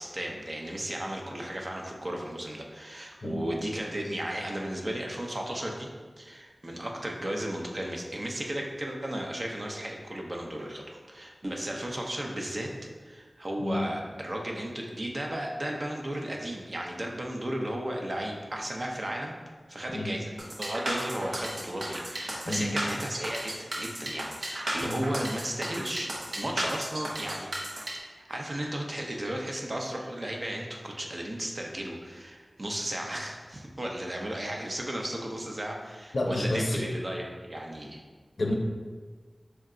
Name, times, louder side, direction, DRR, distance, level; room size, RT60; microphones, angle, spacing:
voice 1, 0.0-5.9 6.2-12.7 13.0-19.3 19.7-20.3 20.6-26.1 26.4-27.5 28.2-38.0, right 1 dB, 50° right, 0 dB, 0.6 m, -34 dB
sound 1, 20.4-27.9, right 1 dB, 90° right, 0.7 m, -34 dB
voice 2, 36.1-36.8 38.4-38.5, left 1 dB, 80° left, 1 dB, 0.5 m, -29 dB
4.6 x 2.2 x 3.7 m, 1.4 s
wide cardioid pair, 45°, 0 cm